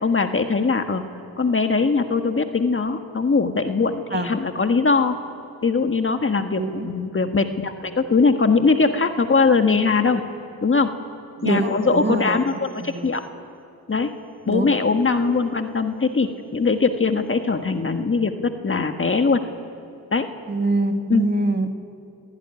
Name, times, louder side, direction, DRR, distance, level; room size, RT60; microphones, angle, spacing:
voice 1, 0.0-1.0 1.4-5.2 5.6-10.2 10.6-10.9 11.4-13.2 13.9-14.1 14.5-19.4 20.1-20.3 21.1-21.3, left 4 dB, 35° left, 6 dB, 1.6 m, -21 dB
voice 2, 6.6-6.9 11.4-12.4 12.8-13.1 14.5-14.7 20.5-21.7, right 2 dB, 30° right, 5 dB, 2.1 m, -24 dB
27.0 x 16.5 x 9.7 m, 2.5 s
cardioid pair, 70°, 36 cm